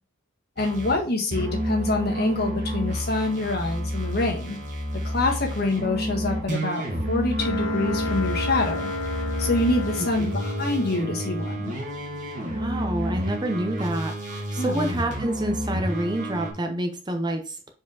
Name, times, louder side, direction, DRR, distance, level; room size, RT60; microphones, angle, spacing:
voice 1, 0.6-4.6 5.0-8.9 9.4-11.7 14.6-14.9, left 2 dB, 50° left, 1 dB, 1.6 m, -26 dB
sound 1, 0.6-1.0 1.3-16.5, equal, 35° right, 1.8 m, -30 dB
sound 2, 7.4-13.4, left 2 dB, 80° left, 1.5 m, -33 dB
voice 2, 12.5-17.7, right 1 dB, 20° right, 5 dB, 0.7 m, -28 dB
4.9 x 4.6 x 4.8 m, 0.35 s
head